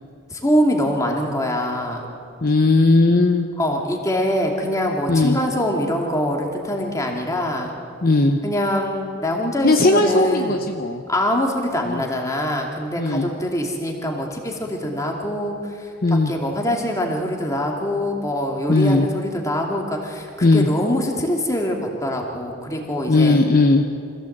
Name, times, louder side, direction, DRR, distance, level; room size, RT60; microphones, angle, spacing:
voice 1, 0.3-2.1 3.6-7.7 8.4-10.6 11.1-23.4, left 1 dB, 15° left, 1 dB, 2.4 m, -24 dB
voice 2, 2.4-3.5 5.1-5.4 8.0-8.4 9.6-11.0 11.9-12.0 13.0-13.3 16.0-16.3 18.7-19.1 20.4-20.7 23.1-23.9, left 2 dB, 40° left, 5 dB, 0.8 m, -17 dB
25.5 x 15.5 x 7.9 m, 2.5 s
head